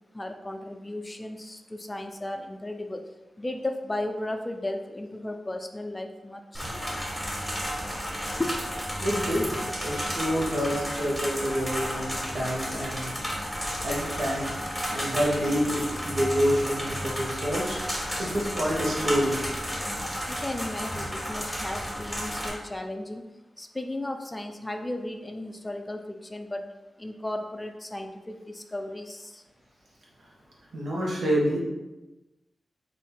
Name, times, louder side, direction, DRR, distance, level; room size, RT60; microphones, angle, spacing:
voice 1, 0.1-3.0 3.4-7.0 8.4-8.5 20.3-23.2 23.6-26.6 27.0-29.4, left 1 dB, 20° left, 5 dB, 0.4 m, -35 dB
sound 1, 6.5-22.5, equal, ahead, 1.3 m, -32 dB
voice 2, 9.0-9.4 9.8-13.2 13.8-14.5 14.9-19.4 30.7-31.6, equal, 85° right, -4 dB, 1.1 m, -28 dB
3.6 x 2.6 x 4.3 m, 1.1 s
wide cardioid pair, 90°, 0 cm